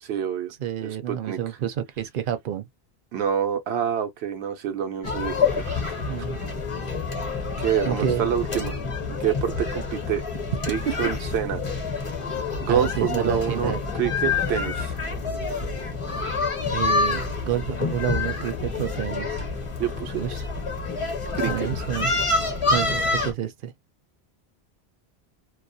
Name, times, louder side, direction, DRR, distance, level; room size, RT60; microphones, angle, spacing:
voice 1, 0.0-0.5 0.8-1.6 3.1-5.8 7.6-8.8 9.1-10.2 10.7-11.6 12.6-15.0 19.8-20.2 21.3-21.7, right 9 dB, 90° right, 0.9 m, -27 dB
voice 2, 0.6-2.7 6.1-6.4 7.8-8.3 12.7-13.8 16.7-19.4 20.1-20.5 21.4-22.1 22.7-23.7, right 10 dB, 65° right, 0.7 m, -29 dB
sound 1, 5.0-23.3, left 4 dB, 35° left, 0.7 m, -27 dB
2.3 x 2.0 x 2.6 m
omnidirectional pair, 1.0 m